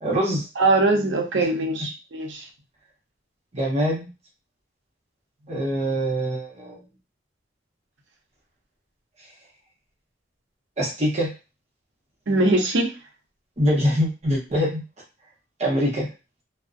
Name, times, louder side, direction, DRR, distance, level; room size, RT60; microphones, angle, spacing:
voice 1, 0.0-0.5 3.5-4.1 5.5-6.8 10.8-11.3 13.6-14.8 15.6-16.1, equal, 35° right, -2 dB, 0.8 m, -24 dB
voice 2, 0.6-2.4 12.3-12.9, right 2 dB, 80° right, 2 dB, 0.6 m, -21 dB
2.5 x 2.0 x 2.4 m, 0.29 s
head